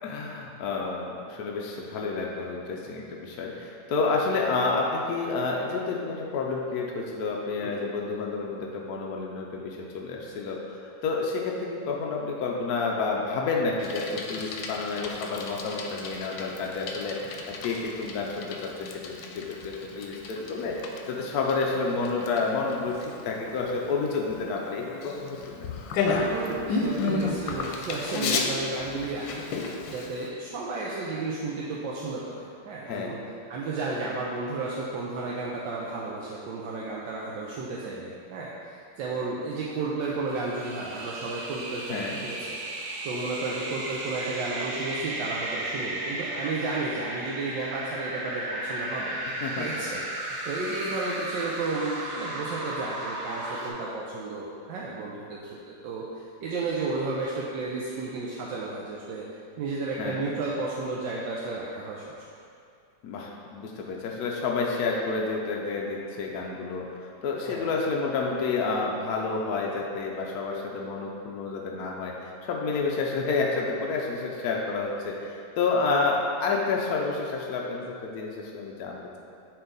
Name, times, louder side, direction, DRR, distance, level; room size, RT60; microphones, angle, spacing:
voice 1, 0.0-17.4 17.6-25.7 32.9-33.2 41.9-42.2 49.4-49.7 60.0-60.2 63.0-79.2, left 4 dB, 65° left, -1 dB, 1.0 m, -30 dB
Bicycle, 13.8-30.3, left 3 dB, 90° left, 1.3 m, -33 dB
voice 2, 21.9-22.2 26.3-33.2 33.5-42.8 43.0-49.2 49.6-59.2 59.6-62.0 67.5-67.7, right 3 dB, 80° right, -4 dB, 1.3 m, -33 dB
sound 1, 40.3-53.7, right 1 dB, 55° right, 1.0 m, -35 dB
8.7 x 3.4 x 3.8 m, 2.4 s
omnidirectional pair, 2.0 m